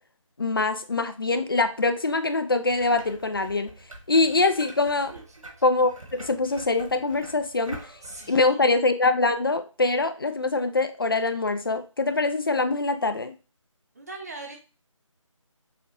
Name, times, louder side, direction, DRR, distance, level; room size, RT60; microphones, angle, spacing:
voice 1, 0.4-3.7 4.1-5.1 5.6-5.9 6.2-7.8 8.3-13.3, left 3 dB, 45° left, 9 dB, 0.5 m, -24 dB
sound 1, 2.7-8.3, right 1 dB, 85° right, 1.5 m, -45 dB
voice 2, 7.8-8.7 13.9-14.6, right 3 dB, 30° right, 1 dB, 0.7 m, -41 dB
6.2 x 2.4 x 2.8 m, 0.33 s
figure-of-eight pair, 160°, 17 cm